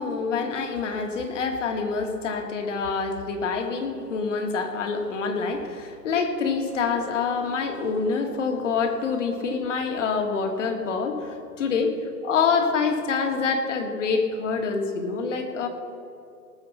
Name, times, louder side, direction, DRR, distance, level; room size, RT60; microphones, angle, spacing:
voice 1, 0.0-12.0 12.2-15.7, left 5 dB, 50° left, 4 dB, 1.9 m, -26 dB
19.0 x 6.9 x 5.6 m, 2.5 s
hypercardioid pair, 160°, 48 cm